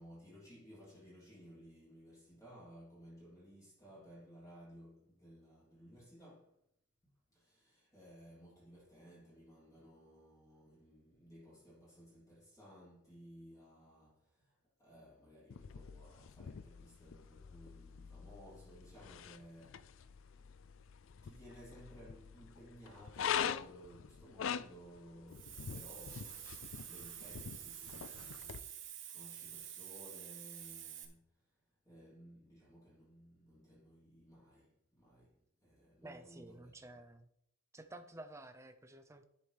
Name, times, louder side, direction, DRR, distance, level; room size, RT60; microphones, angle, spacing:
voice 1, 0.0-6.5 7.3-20.0 21.2-28.6 29.1-31.2 31.8-35.3 35.6-37.0, equal, 15° left, 3.3 m, -58 dB
sound 1, 15.5-28.6, left 8 dB, 60° left, 0.4 m, -44 dB
Hiss, 25.3-31.1, right 10 dB, 55° right, 1.2 m, -49 dB
voice 2, 36.0-37.3 37.7-39.2, right 2 dB, 15° right, 0.6 m, -52 dB
10.5 x 7.6 x 3.4 m
head